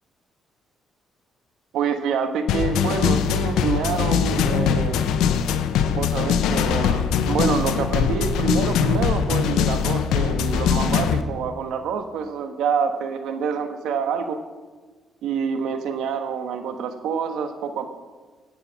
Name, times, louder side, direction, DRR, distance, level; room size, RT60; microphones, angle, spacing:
voice 1, 1.7-5.0 5.9-14.4 15.2-17.9, right 6 dB, 85° right, 7 dB, 1.4 m, -26 dB
sound 1, 2.5-11.2, left 7 dB, 90° left, 0.8 m, -22 dB
17.0 x 8.5 x 6.0 m, 1.4 s
cardioid pair, 90°, 0 cm